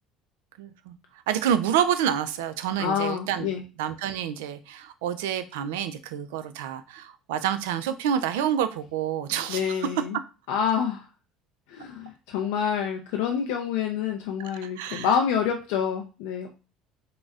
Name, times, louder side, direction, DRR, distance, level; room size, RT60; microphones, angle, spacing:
voice 1, 0.6-1.0 1.3-3.5 3.8-9.9 14.4-15.1, right 9 dB, 85° right, 11 dB, 0.3 m, -28 dB
voice 2, 2.8-3.6 9.5-10.2 10.5-11.1 11.7-16.5, left 7 dB, 80° left, 3 dB, 0.4 m, -27 dB
3.7 x 2.0 x 2.4 m, 0.32 s
supercardioid pair, 85°, 0 cm